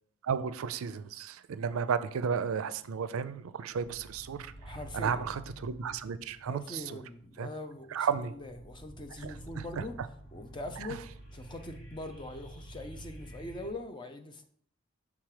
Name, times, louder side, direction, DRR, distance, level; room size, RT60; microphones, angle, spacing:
voice 1, 0.2-7.0 7.4-7.5 7.9-8.3 9.2-9.8 10.9-11.0, right 6 dB, 90° right, 14 dB, 0.4 m, -34 dB
sound 1, 2.7-3.3 3.7-13.7, right 1 dB, 85° left, 1.7 m, -49 dB
voice 2, 4.6-5.3 6.5-10.0 10.3-11.0 11.3-14.4, left 2 dB, 20° left, 7 dB, 0.5 m, -42 dB
6.1 x 3.6 x 4.8 m, 0.62 s
head